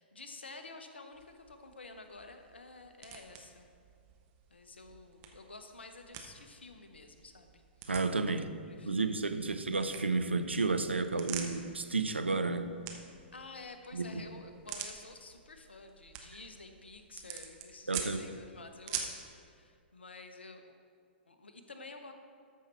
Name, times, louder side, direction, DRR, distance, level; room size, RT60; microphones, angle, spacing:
voice 1, 0.0-3.7 4.5-7.6 8.7-9.1 13.3-20.8 21.3-22.1, left 3 dB, 70° left, 7 dB, 0.9 m, -50 dB
sound 1, 1.1-19.3, right 8 dB, 35° right, 1.0 m, -47 dB
voice 2, 7.9-8.5 8.8-12.7 13.9-14.2 17.9-18.2, right 3 dB, 80° right, 9 dB, 0.6 m, -32 dB
13.5 x 5.6 x 4.3 m, 2.2 s
figure-of-eight pair, 110°, 6 cm